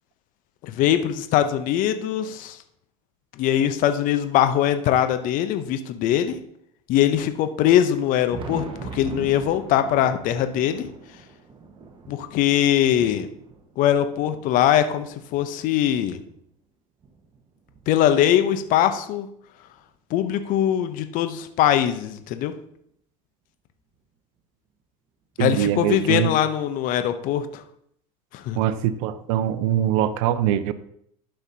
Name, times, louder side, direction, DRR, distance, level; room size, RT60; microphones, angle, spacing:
voice 1, 0.6-2.6 3.4-6.4 6.9-8.6 8.9-10.9 12.1-13.3 13.8-16.2 17.9-19.3 20.1-22.5 25.4-27.6 28.3-28.6, left 11 dB, 50° left, 9 dB, 0.7 m, -21 dB
Thunder, 7.8-16.4 17.0-18.7 19.9-20.0 20.5-20.6 22.5-22.6 23.9-24.0 25.6-25.7, right 4 dB, 30° right, 1.2 m, -42 dB
voice 2, 25.4-26.3 28.5-30.7, right 11 dB, 60° right, 13 dB, 0.7 m, -23 dB
11.5 x 5.7 x 2.8 m, 0.69 s
hypercardioid pair, 80°, 18 cm